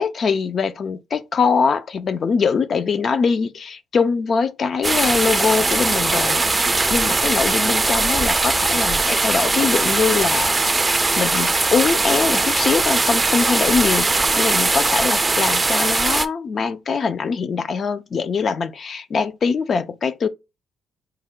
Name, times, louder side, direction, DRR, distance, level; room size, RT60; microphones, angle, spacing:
voice 1, 0.0-20.3, left 5 dB, 50° left, 0.4 m, -22 dB
sound 1, 4.8-16.3, right 3 dB, 20° right, 0.4 m, -20 dB
4.3 x 2.1 x 3.7 m
cardioid pair, 90°, 0 cm